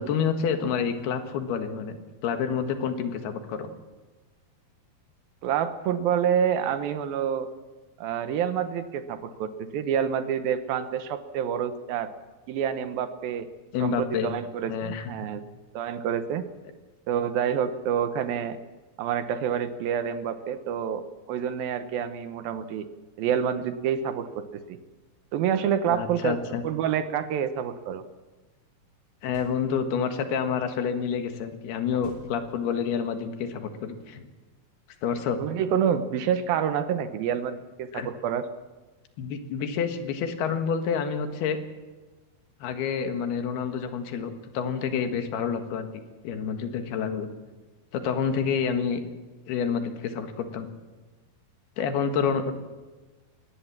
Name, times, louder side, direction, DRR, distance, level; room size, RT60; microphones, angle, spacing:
voice 1, 0.0-3.7 13.7-14.4 14.7-15.1 25.9-26.6 29.2-34.3 35.0-35.4 37.9-38.1 39.2-41.6 42.6-45.9 46.2-47.3 47.9-49.0 49.5-50.7 51.8-52.5, left 6 dB, 80° left, 7 dB, 3.6 m, -28 dB
voice 2, 5.4-7.5 8.0-12.1 12.5-13.5 13.8-15.4 15.7-16.5 17.1-18.6 19.0-22.9 23.2-24.8 25.3-28.0 35.4-38.5, right 8 dB, 75° right, 10 dB, 2.7 m, -28 dB
sound 1, 29.3-30.0 32.0-33.0, left 3 dB, 55° left, 5.9 m, -50 dB
20.0 x 18.5 x 7.4 m, 1.2 s
omnidirectional pair, 4.5 m